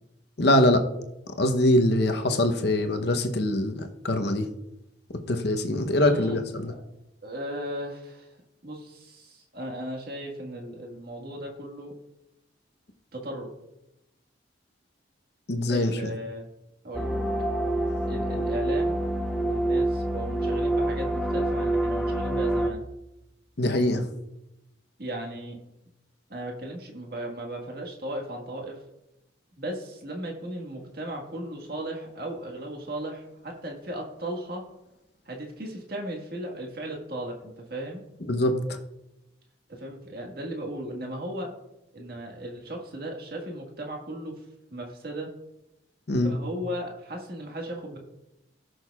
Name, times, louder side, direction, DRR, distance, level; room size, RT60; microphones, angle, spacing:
voice 1, 0.4-0.8 1.4-4.5 5.3-6.7 15.5-16.0 23.6-24.0 38.3-38.8 46.1-46.3, left 1 dB, 55° left, 5 dB, 0.9 m, -23 dB
voice 2, 6.0-6.8 7.2-8.3 8.6-12.0 13.1-13.5 15.7-16.4 16.8-17.2 18.1-19.0 19.4-22.8 25.0-25.6 26.3-28.8 29.6-34.6 35.2-38.0 39.7-41.5 41.9-44.4 44.7-45.3 46.2-48.0, right 1 dB, 50° right, 1 dB, 1.7 m, -36 dB
sound 1, 16.9-22.7, right 1 dB, ahead, 0.6 m, -26 dB
18.0 x 6.3 x 2.4 m, 0.91 s
head